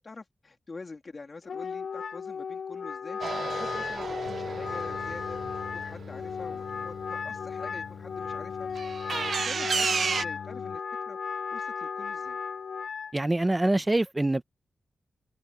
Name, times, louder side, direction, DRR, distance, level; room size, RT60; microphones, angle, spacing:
voice 1, 0.0-3.2 3.5-5.4 5.7-8.7 9.1-10.8 11.1-11.2 11.5-12.4, left 3 dB, 35° left, 3.2 m, -45 dB
Wind instrument woodwind instrument, 1.4-13.1, left 6 dB, 60° left, 0.4 m, -35 dB
sound 1, 3.2-6.9 8.8-10.3, right 5 dB, 55° right, 0.6 m, -32 dB
Singing, 4.2-10.8, left 7 dB, 85° left, 4.5 m, -44 dB
voice 2, 13.1-14.4, right 2 dB, 15° right, 0.9 m, -25 dB
wide cardioid pair, 150°, 0 cm